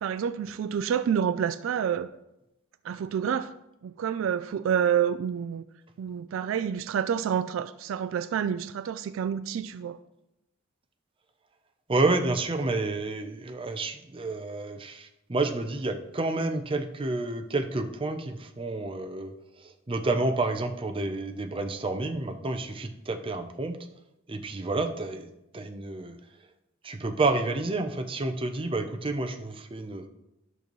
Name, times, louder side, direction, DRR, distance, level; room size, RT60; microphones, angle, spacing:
voice 1, 0.0-2.1 2.8-3.5 3.8-5.6 6.0-10.0, right 8 dB, 70° right, 14 dB, 0.3 m, -28 dB
voice 2, 11.9-23.8 24.3-26.2 26.8-30.1, right 2 dB, 25° right, 6 dB, 0.6 m, -30 dB
11.0 x 6.7 x 3.1 m, 0.89 s
head